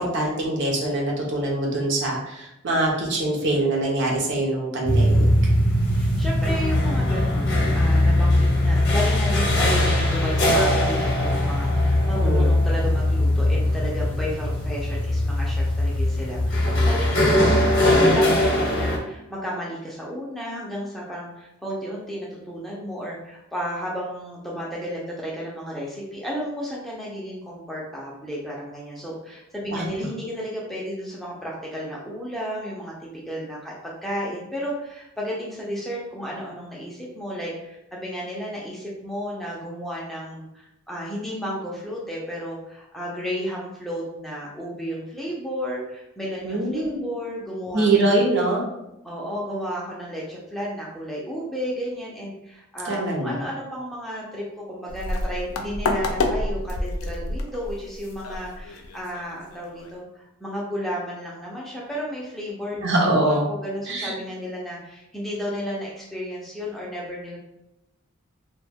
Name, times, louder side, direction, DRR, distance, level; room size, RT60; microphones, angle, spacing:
voice 1, 0.0-5.2 12.2-12.5 17.1-17.6 29.7-29.9 46.4-47.0 47.7-48.6 52.8-53.3 62.8-63.4 63.9-64.1, right 2 dB, 55° right, -1 dB, 0.6 m, -23 dB
sound 1, 4.8-19.0, left 1 dB, 55° left, 0.7 m, -20 dB
voice 2, 5.9-32.9 33.3-48.3 49.0-67.4, equal, ahead, -5 dB, 0.4 m, -33 dB
sound 2, 54.9-59.9, left 2 dB, 85° left, 0.4 m, -29 dB
2.1 x 2.1 x 3.3 m, 0.87 s
head